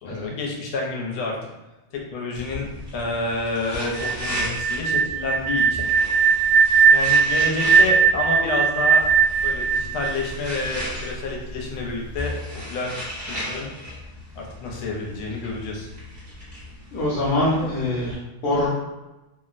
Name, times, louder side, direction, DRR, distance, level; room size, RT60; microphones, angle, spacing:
voice 1, 0.0-1.4 1.9-5.9 6.9-9.0 9.4-12.3 12.7-12.9 13.3-13.7 14.4-15.9, left 3 dB, 90° left, -1 dB, 1.4 m, -29 dB
sound 1, 2.4-18.2, left 1 dB, 40° right, 0.3 m, -36 dB
sound 2, 3.9-10.8, right 6 dB, 65° right, 1.3 m, -19 dB
voice 2, 16.9-18.7, left 1 dB, 70° left, -7 dB, 1.3 m, -24 dB
3.5 x 2.0 x 2.4 m, 1.0 s
omnidirectional pair, 2.2 m